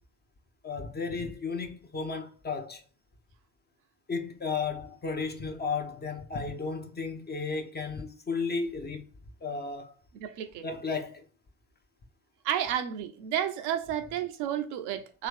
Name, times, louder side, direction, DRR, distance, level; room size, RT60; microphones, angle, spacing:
voice 1, 0.6-2.8 4.1-9.1 9.4-10.0 10.6-11.2, left 4 dB, 20° left, 0.6 m, -34 dB
voice 2, 10.2-10.6 12.4-15.3, right 10 dB, 60° right, 0.6 m, -31 dB
3.0 x 2.8 x 3.2 m
figure-of-eight pair, 40°, 47 cm